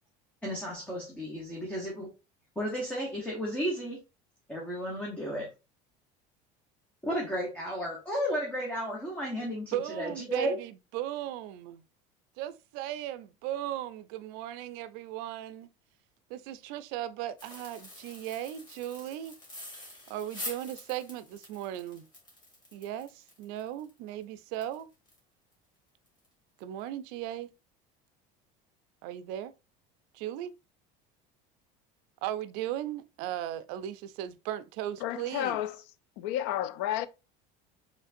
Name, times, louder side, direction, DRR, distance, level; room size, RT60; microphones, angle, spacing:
voice 1, 0.4-2.1 2.6-4.0 4.5-5.5 7.0-10.6, equal, 10° left, 1.0 m, -33 dB
voice 2, 9.7-11.8 12.4-15.7 16.3-19.3 20.1-22.1 22.7-24.9 26.6-27.5 29.0-29.5 30.1-30.5 32.2-35.6, right 12 dB, 65° right, 0.4 m, -37 dB
sound 1, 17.4-25.2 25.5-25.6 26.1-26.3 26.6-26.8, left 1 dB, 25° left, 1.7 m, -46 dB
voice 3, 35.0-35.8 36.2-37.1, left 12 dB, 65° left, 0.4 m, -31 dB
5.0 x 3.2 x 2.6 m
cardioid pair, 160°, 17 cm